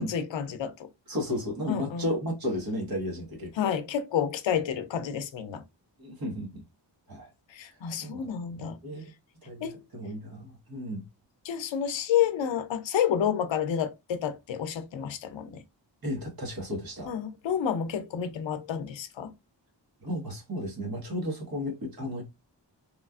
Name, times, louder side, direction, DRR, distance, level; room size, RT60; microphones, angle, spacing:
voice 1, 0.0-0.9 1.7-2.1 3.6-5.6 7.5-8.8 9.6-9.8 11.5-15.6 17.1-19.3, left 8 dB, 85° left, 0.6 m, -29 dB
voice 2, 1.1-3.7 6.0-6.6 7.1-7.3 7.7-8.3 8.6-9.1 9.4-11.0 16.0-17.1 20.0-22.2, left 1 dB, 55° right, 1.2 m, -34 dB
3.0 x 2.4 x 2.3 m
wide cardioid pair, 135°, 44 cm